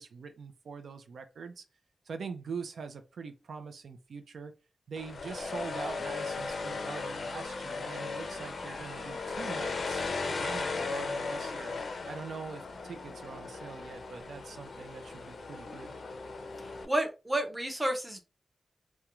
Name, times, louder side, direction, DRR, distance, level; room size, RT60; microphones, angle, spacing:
voice 1, 0.0-1.6 2.1-4.5 4.9-11.7 12.1-15.9, right 5 dB, 75° right, 0.4 m, -43 dB
sound 1, 5.0-16.9, left 4 dB, 55° left, 0.4 m, -37 dB
voice 2, 16.8-18.2, right 1 dB, 10° right, 0.5 m, -30 dB
2.3 x 2.1 x 2.9 m
wide cardioid pair, 175°, 0 cm